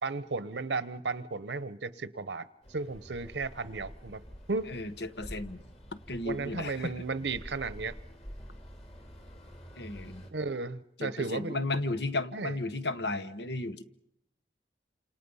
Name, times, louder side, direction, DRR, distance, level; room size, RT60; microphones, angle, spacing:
voice 1, 0.0-4.2 4.5-4.7 6.2-7.9 10.3-11.7 12.3-12.5, right 3 dB, 90° right, 0.9 m, -34 dB
sound 1, 2.6-10.3, equal, 35° left, 3.3 m, -48 dB
voice 2, 4.7-5.6 5.9-6.9 9.8-10.2 11.0-13.8, left 2 dB, 80° left, 1.2 m, -34 dB
28.5 x 27.5 x 5.6 m
head